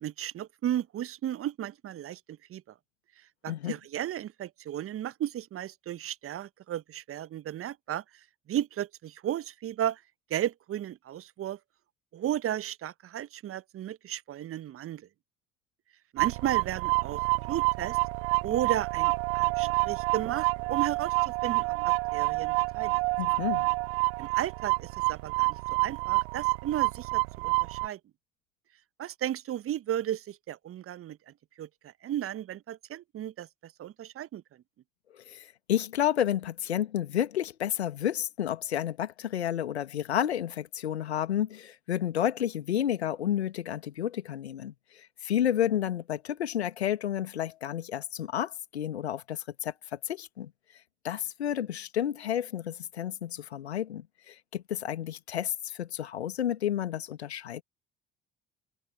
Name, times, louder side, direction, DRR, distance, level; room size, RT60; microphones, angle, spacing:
voice 1, 0.0-2.6 3.4-8.0 8.5-10.0 10.3-11.6 12.1-15.1 16.1-18.0 18.4-22.9 24.2-28.0 29.0-34.4, right 11 dB, 45° right, 1.3 m, -34 dB
sound 1, 16.2-27.9, right 29 dB, 65° right, 0.8 m, -28 dB
voice 2, 23.2-23.7 35.1-50.5 51.0-57.6, left 10 dB, 75° left, 2.5 m, -31 dB
figure-of-eight pair, 50°, 32 cm